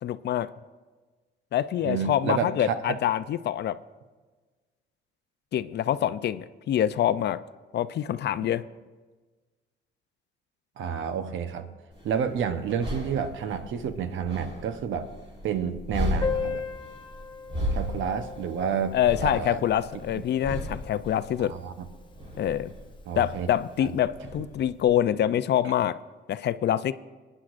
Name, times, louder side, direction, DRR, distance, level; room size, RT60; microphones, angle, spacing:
voice 1, 0.0-0.5 1.5-3.8 5.5-7.4 7.7-8.6 18.9-21.5 22.4-22.7 23.2-26.0 26.3-26.9, left 11 dB, 60° left, 15 dB, 0.5 m, -25 dB
voice 2, 1.8-2.7 10.8-11.7 12.0-15.1 15.4-16.6 17.7-19.6 21.4-21.7 23.1-23.5 23.8-23.9, right 7 dB, 75° right, 9 dB, 0.9 m, -30 dB
sound 1, 11.9-25.0, left 1 dB, 30° right, 4.5 m, -36 dB
Piano, 16.2-21.6 21.8-21.9 22.1-22.3 22.6-22.7 23.5-23.7, left 6 dB, 25° left, 0.7 m, -37 dB
22.0 x 9.9 x 2.5 m, 1.3 s
cardioid pair, 90°, 20 cm